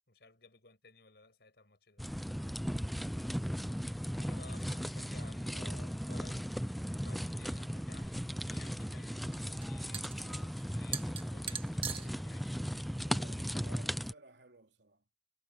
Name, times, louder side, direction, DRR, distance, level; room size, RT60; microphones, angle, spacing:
voice 1, 0.1-2.0 4.2-6.6 6.9-12.5, left 3 dB, 65° left, 6.1 m, -57 dB
sound 1, 2.0-14.1, equal, ahead, 0.7 m, -37 dB
sound 2, 8.0-14.1, right 7 dB, 30° right, 2.0 m, -45 dB
Camera, 8.6-8.9 10.0-10.3 11.6-12.9 13.4-13.6, left 6 dB, 30° left, 7.8 m, -71 dB
voice 2, 13.0-15.0, right 2 dB, 80° right, 3.2 m, -57 dB
head